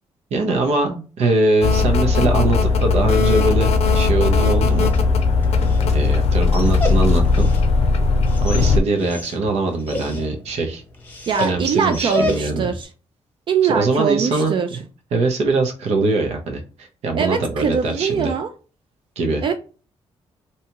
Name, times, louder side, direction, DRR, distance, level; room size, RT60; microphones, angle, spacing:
voice 1, 0.3-4.9 5.9-7.5 8.4-10.8 11.4-12.7 13.6-14.8 15.1-18.3 19.2-19.4, right 3 dB, 85° right, 4 dB, 0.7 m, -22 dB
sound 1, 1.6-8.8, left 4 dB, 80° left, 0.5 m, -17 dB
Dog, 4.5-12.8, left 2 dB, 20° left, 0.8 m, -31 dB
voice 2, 11.3-12.9 13.5-14.7 17.1-18.5 19.4-19.5, right 6 dB, 50° right, 6 dB, 0.3 m, -22 dB
2.8 x 2.3 x 2.9 m, 0.36 s
cardioid pair, 105°, 11 cm